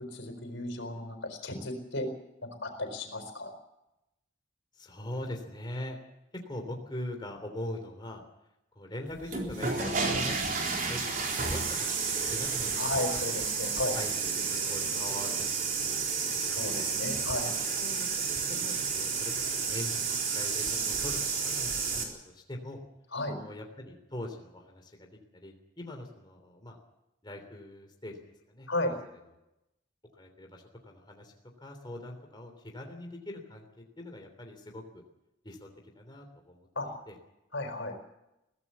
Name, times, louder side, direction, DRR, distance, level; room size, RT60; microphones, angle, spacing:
voice 1, 0.0-2.1 2.4-3.5 12.8-14.0 16.5-17.5 23.1-23.4 28.7-28.9 36.8-36.9 37.5-37.9, left 2 dB, 85° left, 6 dB, 4.5 m, -34 dB
voice 2, 4.7-6.0 6.4-8.2 8.7-11.9 12.3-13.2 13.9-15.5 15.8-16.7 17.7-22.8 23.4-25.1 25.3-26.8 27.2-28.2 28.5-29.0 30.2-31.3 31.6-35.0 35.4-36.7 37.1-37.2, left 1 dB, 25° left, 3 dB, 3.2 m, -42 dB
sound 1, 9.2-22.0, right 5 dB, 45° right, 3.9 m, -31 dB
22.5 x 16.5 x 7.2 m, 0.90 s
head